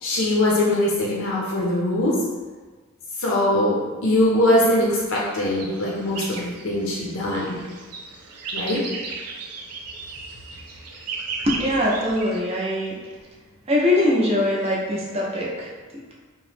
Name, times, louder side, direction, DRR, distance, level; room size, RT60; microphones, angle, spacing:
voice 1, 0.0-2.2 3.2-7.6 8.5-8.8, left 1 dB, 65° left, -5 dB, 0.5 m, -22 dB
sound 1, 5.3-12.4, right 4 dB, 90° right, 0.4 m, -36 dB
voice 2, 11.4-13.1 13.7-16.1, left 1 dB, 25° right, -4 dB, 0.5 m, -22 dB
2.9 x 2.0 x 3.1 m, 1.3 s
head